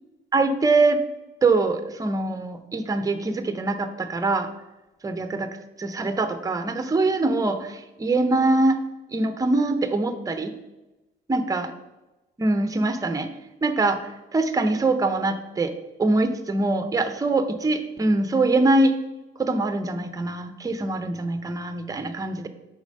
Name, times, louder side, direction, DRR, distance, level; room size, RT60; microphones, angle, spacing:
voice 1, 0.3-1.0 1.4-4.5 5.0-5.5 5.8-8.8 9.1-10.5 11.3-11.7 12.4-13.3 13.6-15.7 16.0-18.9 19.4-22.5, right 2 dB, 15° right, 9 dB, 0.5 m, -23 dB
4.8 x 4.1 x 5.2 m, 1.0 s
cardioid pair, 90°, 20 cm